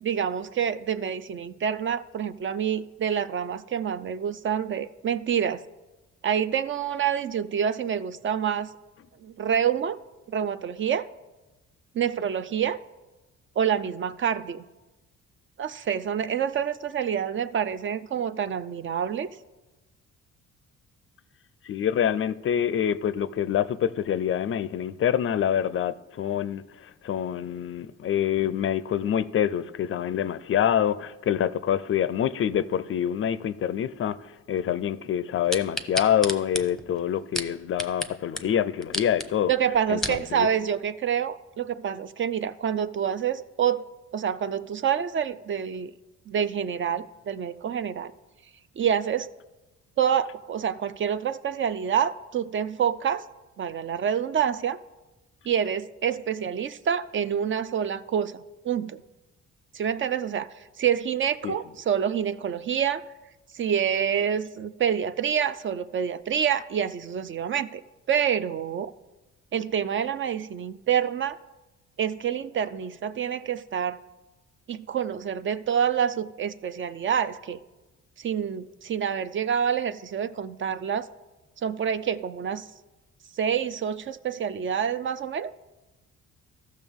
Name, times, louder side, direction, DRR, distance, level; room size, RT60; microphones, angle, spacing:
voice 1, 0.0-5.6 6.2-8.7 9.2-10.0 10.3-11.1 11.9-12.8 13.6-14.6 15.6-19.3 39.5-43.8 44.1-45.9 46.3-48.1 48.8-49.3 50.0-53.2 53.6-54.8 55.5-58.3 58.6-59.0 59.7-63.0 63.5-67.8 68.1-68.9 69.5-71.4 72.0-74.0 74.7-77.6 78.2-81.1 81.6-82.7 83.4-85.5, right 8 dB, 40° right, 0.4 m, -27 dB
voice 2, 21.6-39.5 39.9-40.5 61.4-61.6, left 9 dB, 45° left, 0.4 m, -26 dB
sound 1, 35.5-38.1 38.4-38.5 38.8-39.3 39.7-40.2 40.8-40.9, left 1 dB, ahead, 0.7 m, -31 dB
14.0 x 6.3 x 3.6 m
cardioid pair, 90°, 30 cm